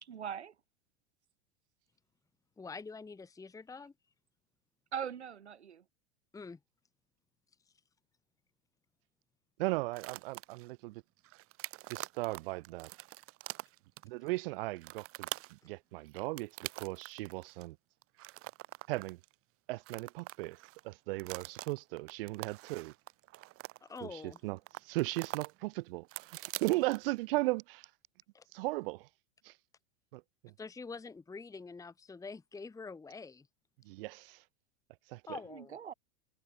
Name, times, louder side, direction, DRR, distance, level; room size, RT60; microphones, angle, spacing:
voice 1, 0.0-0.5 4.9-5.8 35.5-35.9, right 8 dB, 85° right, 2.5 m, -41 dB
voice 2, 2.6-3.9 6.3-6.6 23.8-24.4 28.3-28.4 30.6-33.5 35.3-35.7, left 4 dB, 10° left, 1.2 m, -46 dB
voice 3, 9.6-11.0 11.9-12.9 14.0-17.8 18.9-19.2 19.7-20.6 20.8-22.9 24.0-27.9 28.5-29.1 29.4-29.6 30.1-30.5 33.8-34.4 35.1-35.4, right 21 dB, 60° right, 1.0 m, -37 dB
sound 1, 9.9-10.7 11.2-14.3 14.8-15.6 16.1-17.6 18.0-19.3 19.7-20.8 21.2-24.4 24.7-25.5 25.8-27.2, right 18 dB, 40° right, 2.2 m, -45 dB
hypercardioid pair, 95°, 33 cm